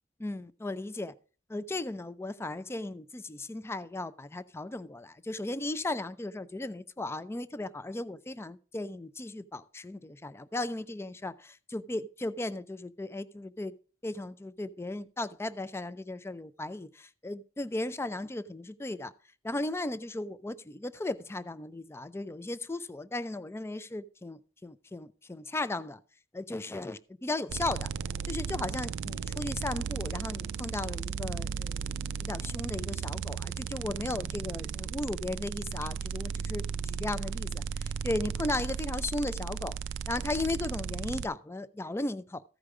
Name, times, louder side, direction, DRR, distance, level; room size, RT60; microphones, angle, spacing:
voice 1, 0.2-1.1 1.5-13.7 14.0-19.1 19.4-26.0 26.3-27.9 28.2-39.7 40.1-42.4, left 2 dB, 15° left, 0.4 m, -36 dB
sound 1, 27.5-41.3, right 6 dB, 70° right, 0.3 m, -35 dB
14.5 x 5.0 x 4.7 m
head